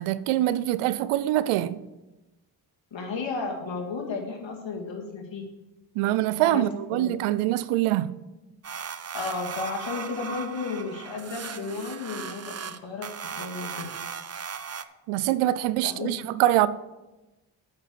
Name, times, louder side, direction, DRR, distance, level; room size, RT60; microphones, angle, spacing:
voice 1, 0.0-1.8 6.0-8.2 15.1-16.7, right 14 dB, 90° right, 0.6 m, -24 dB
voice 2, 2.9-5.4 6.5-6.7 6.9-7.1 9.1-13.1 13.4-13.8 15.8-16.1, left 4 dB, 65° left, 2.5 m, -33 dB
sound 1, 8.6-14.8, right 6 dB, 30° right, 0.7 m, -37 dB
8.6 x 6.6 x 6.6 m
supercardioid pair, 40°, 49 cm